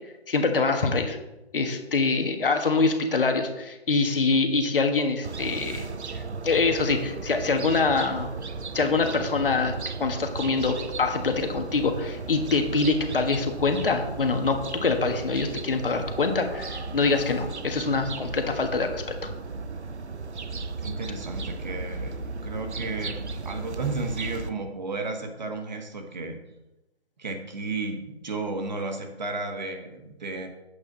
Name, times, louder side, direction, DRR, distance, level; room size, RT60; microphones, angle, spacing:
voice 1, 0.3-1.2 1.5-5.8 6.1-8.3 8.7-9.7 10.0-19.3, left 4 dB, 55° left, 5 dB, 1.5 m, -25 dB
sound 1, 5.2-24.5, right 4 dB, 85° right, 0.9 m, -35 dB
voice 2, 20.8-22.1 22.4-26.4 27.2-30.5, right 3 dB, 40° right, 4 dB, 1.4 m, -33 dB
9.0 x 8.2 x 3.9 m, 0.99 s
figure-of-eight pair, 165°, 33 cm